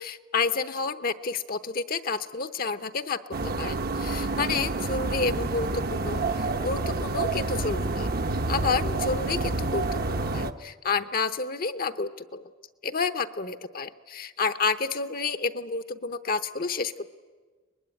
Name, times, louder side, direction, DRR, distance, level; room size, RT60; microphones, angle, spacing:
voice 1, 0.0-3.2 3.6-12.5 12.8-17.1, left 4 dB, 45° left, 11 dB, 0.8 m, -30 dB
sound 1, 3.3-10.5, right 2 dB, 50° right, 0.9 m, -28 dB
24.0 x 20.5 x 9.9 m, 1.4 s
head